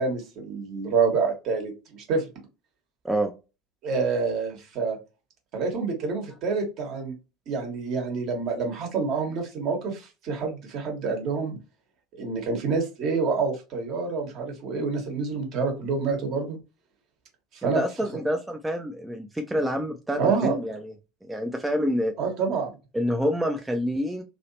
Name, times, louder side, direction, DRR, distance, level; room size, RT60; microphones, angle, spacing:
voice 1, 0.0-2.3 3.8-5.0 5.5-7.1 7.5-11.6 12.1-16.6 17.5-17.8 20.2-20.6 22.2-22.8, right 4 dB, 50° right, 1.3 m, -27 dB
voice 2, 17.6-20.9 21.3-22.1 22.9-24.2, equal, 10° right, 0.5 m, -27 dB
3.0 x 2.8 x 2.7 m
figure-of-eight pair, 70°, 0 cm